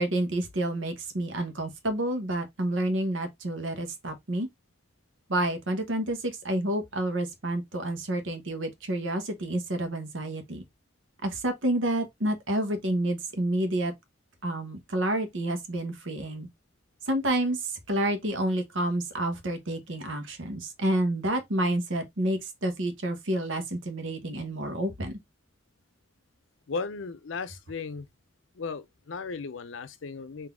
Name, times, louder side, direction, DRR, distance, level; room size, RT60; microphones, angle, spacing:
voice 1, 0.0-4.5 5.3-10.6 11.2-13.9 14.4-16.5 17.1-25.2, right 1 dB, 90° right, 1.0 m, -29 dB
voice 2, 26.7-28.1 28.6-30.5, left 4 dB, 90° left, 0.6 m, -36 dB
3.9 x 2.7 x 3.4 m
head